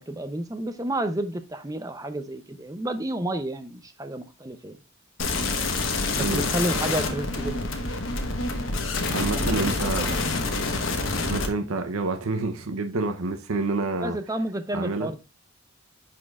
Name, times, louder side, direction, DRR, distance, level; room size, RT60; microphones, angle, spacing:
voice 1, 0.0-4.8 6.1-7.8 9.3-10.3 14.0-15.2, right 1 dB, 15° right, 0.6 m, -31 dB
sound 1, 5.2-11.5, left 3 dB, 70° left, 1.1 m, -27 dB
voice 2, 9.1-10.1 11.3-14.2 14.7-15.1, right 3 dB, 85° right, 0.7 m, -28 dB
11.0 x 4.3 x 2.4 m
head